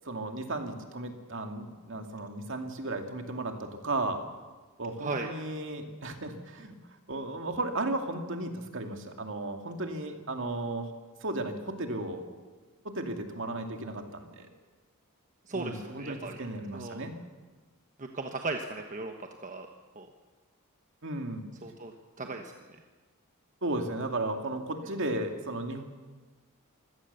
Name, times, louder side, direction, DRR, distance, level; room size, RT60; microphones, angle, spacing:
voice 1, 0.0-4.2 4.8-6.8 7.1-10.9 11.2-12.2 12.8-14.5 15.5-17.2 21.0-21.5 23.6-25.8, right 2 dB, 60° right, 4 dB, 2.4 m, -35 dB
voice 2, 15.5-16.4 16.7-17.0 18.0-19.1 19.4-19.7 19.9-20.1 21.6-22.8, right 3 dB, 35° right, 4 dB, 1.2 m, -37 dB
25.0 x 17.0 x 6.9 m, 1.3 s
head